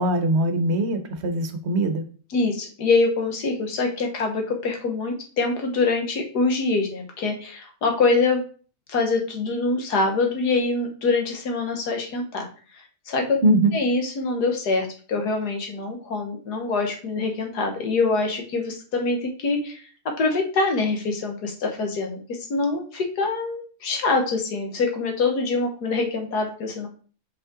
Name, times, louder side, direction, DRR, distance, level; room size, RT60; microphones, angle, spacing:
voice 1, 0.0-2.0 13.4-13.7, right 1 dB, 50° right, 7 dB, 0.9 m, -21 dB
voice 2, 2.3-8.5 8.9-12.5 13.1-13.4 13.7-19.8 20.2-26.9, left 3 dB, 90° left, 3 dB, 1.9 m, -24 dB
5.4 x 5.4 x 3.7 m, 0.40 s
omnidirectional pair, 1.7 m